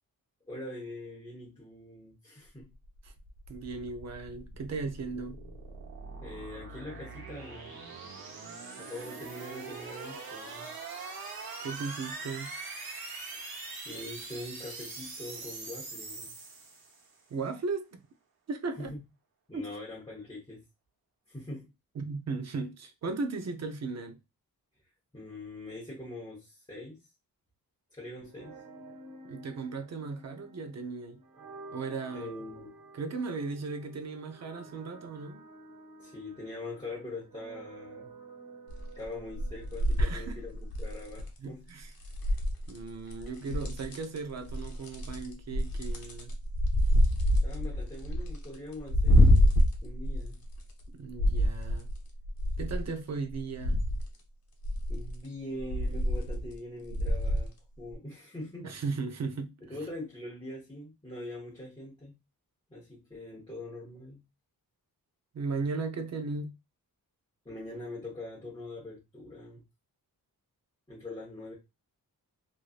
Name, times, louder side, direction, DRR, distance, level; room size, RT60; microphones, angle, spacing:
voice 1, 0.5-2.7 6.2-7.8 8.8-10.7 13.3-13.5 13.8-16.3 18.8-19.0 19.5-20.6 21.3-21.7 25.1-27.0 27.9-28.6 32.1-32.7 36.0-38.1 38.9-41.6 47.4-49.5 49.8-50.4 54.9-58.7 59.7-62.2 62.7-64.2 67.4-69.6 70.9-71.5, left 2 dB, 15° left, 1.1 m, -43 dB
sound 1, 2.7-17.1, right 4 dB, 85° right, 1.0 m, -43 dB
voice 2, 3.5-5.4 11.6-12.5 17.3-18.0 18.5-18.9 19.5-19.7 22.0-24.2 29.2-31.2 31.7-32.3 32.9-35.4 40.0-40.4 41.4-41.9 42.7-46.4 50.9-51.9 52.6-53.8 58.6-59.5 65.3-66.6, right 4 dB, 50° right, 0.5 m, -36 dB
sound 2, 28.2-41.2, right 3 dB, 65° right, 1.1 m, -51 dB
sound 3, 38.7-39.1 39.3-41.3 42.0-42.8 43.1-44.2 44.5-50.8 51.2-52.9 53.3-54.1 54.6-55.2 55.6-56.6 56.9-57.5 57.9-58.0, equal, 75° left, 0.8 m, -27 dB
3.1 x 2.6 x 2.4 m
wide cardioid pair, 160°, 36 cm